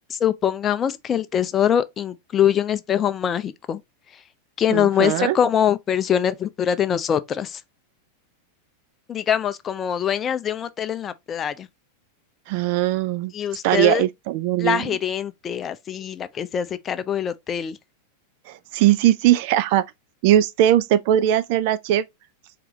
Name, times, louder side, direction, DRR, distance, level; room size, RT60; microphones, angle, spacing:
voice 1, 0.1-3.8 4.6-7.6 9.1-11.7 13.3-14.0 14.6-17.8, left 9 dB, 25° left, 0.5 m, -23 dB
voice 2, 4.7-5.4 12.5-13.3 13.6-14.9 18.5-19.8 20.2-22.0, right 12 dB, 45° right, 0.4 m, -20 dB
4.7 x 2.9 x 3.6 m
figure-of-eight pair, 90°, 0 cm